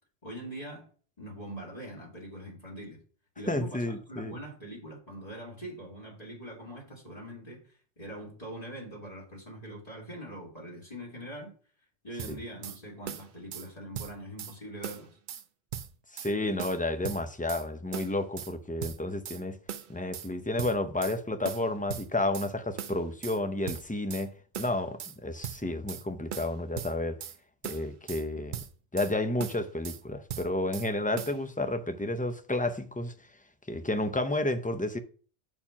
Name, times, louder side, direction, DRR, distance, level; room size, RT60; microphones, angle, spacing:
voice 1, 0.2-0.9 1.2-3.0 3.4-11.5 12.0-15.1, right 1 dB, 35° left, 2.4 m, -43 dB
voice 2, 3.5-4.4 12.3-12.4 16.1-19.6 19.9-27.2 27.6-28.6 28.9-33.1 33.7-35.0, left 2 dB, 10° left, 0.4 m, -31 dB
sound 1, 12.2-12.8 13.1-13.7 13.9-14.5 14.8-15.4 15.7-16.3 16.6-17.6 17.9-18.5 18.8-19.4 19.7-20.3 20.6-21.2 21.4-22.5 22.8-23.4 23.7-24.3 24.5-25.2 25.4-26.0 26.3-27.4 27.6-28.2 28.5-29.1 29.4-30.0 30.3-30.9 31.2-31.4, right 9 dB, 55° right, 0.6 m, -39 dB
7.2 x 4.4 x 5.9 m
omnidirectional pair, 1.2 m